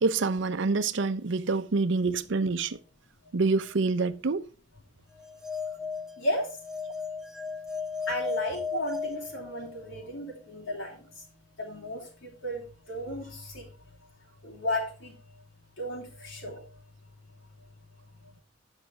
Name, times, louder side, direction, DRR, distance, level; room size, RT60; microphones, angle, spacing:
voice 1, 0.0-2.8 3.3-4.4, right 3 dB, 70° right, 0.6 m, -26 dB
sound 1, 5.2-10.0, left 5 dB, 5° right, 0.5 m, -36 dB
voice 2, 6.2-6.5 8.1-11.1 11.6-12.6 12.9-13.7 14.4-15.1 15.8-16.6, left 1 dB, 80° left, 3.2 m, -34 dB
8.6 x 5.7 x 4.5 m
head